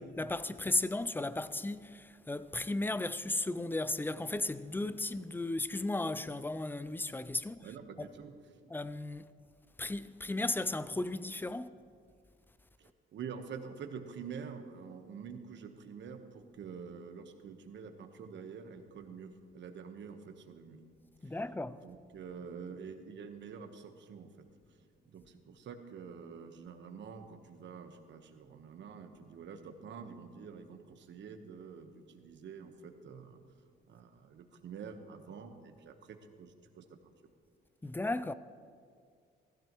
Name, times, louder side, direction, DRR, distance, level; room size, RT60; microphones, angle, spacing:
voice 1, 0.0-7.7 8.0-8.1 8.7-9.3 9.8-11.7 21.2-21.8 37.8-38.3, left 2 dB, 10° left, 0.4 m, -35 dB
voice 2, 7.6-8.3 12.8-20.8 21.2-21.4 21.8-24.5 25.0-33.4 33.9-37.1, right 6 dB, 65° right, 1.2 m, -47 dB
15.5 x 14.5 x 3.0 m
cardioid pair, 90°, 20 cm